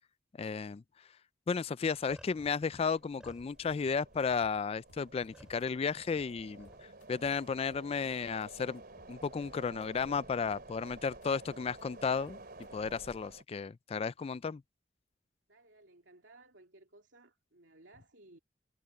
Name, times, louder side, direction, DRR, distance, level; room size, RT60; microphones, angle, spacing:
voice 1, 0.4-0.8 1.5-6.7 7.1-8.8 9.1-12.4 12.7-14.6, left 5 dB, 35° left, 0.3 m, -33 dB
sound 1, 1.8-6.9, equal, 5° right, 3.1 m, -59 dB
sound 2, 2.0-13.4, right 2 dB, 55° right, 3.7 m, -53 dB
sound 3, 2.1-2.5 2.8-2.9 3.1-3.5 3.8-4.6 4.9-5.7 5.9-6.3 6.6-8.1 8.4-8.5 8.8-9.1 9.5-10.2 10.5-11.3 11.6-13.1, left 1 dB, 90° left, 2.1 m, -63 dB
voice 2, 15.5-18.4, right 2 dB, 90° right, 2.6 m, -59 dB
head